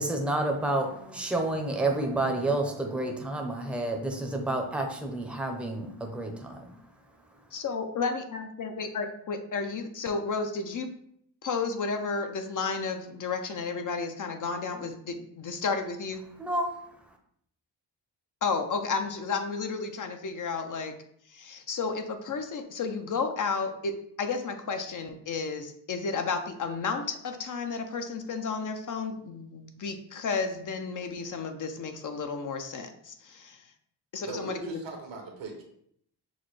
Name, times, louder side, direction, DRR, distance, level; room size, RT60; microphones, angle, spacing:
voice 1, 0.0-6.8 16.4-17.2, right 2 dB, 5° right, 3 dB, 0.7 m, -30 dB
voice 2, 7.5-10.9 11.4-16.2 18.4-20.9 21.3-33.6 34.1-34.8, left 4 dB, 45° left, 6 dB, 0.6 m, -32 dB
voice 3, 34.2-35.6, right 4 dB, 85° right, 2 dB, 1.2 m, -39 dB
6.2 x 2.2 x 3.1 m, 0.68 s
cardioid pair, 90°, 43 cm